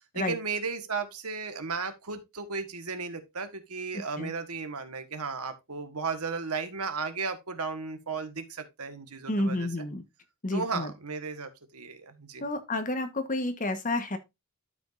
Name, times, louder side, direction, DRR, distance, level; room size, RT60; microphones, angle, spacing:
voice 1, 0.1-9.7 10.5-12.4, right 4 dB, 80° right, 1.5 m, -35 dB
voice 2, 3.9-4.3 9.3-10.0 10.4-10.9 12.4-14.2, left 2 dB, 35° left, 1.3 m, -30 dB
12.5 x 5.3 x 2.6 m
head